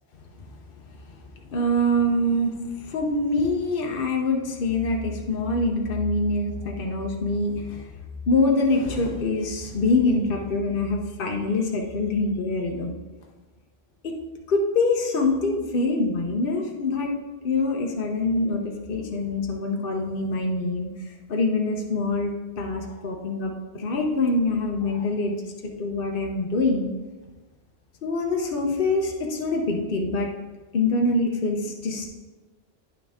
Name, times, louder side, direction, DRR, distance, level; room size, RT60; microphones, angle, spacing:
voice 1, 1.5-7.8 8.3-12.9 14.0-14.2 14.5-17.1 17.4-20.9 21.3-25.5 25.8-26.9 28.0-30.3 30.7-32.1, left 2 dB, 60° left, 1 dB, 1.1 m, -25 dB
9.9 x 5.8 x 3.5 m, 1.2 s
omnidirectional pair, 1.0 m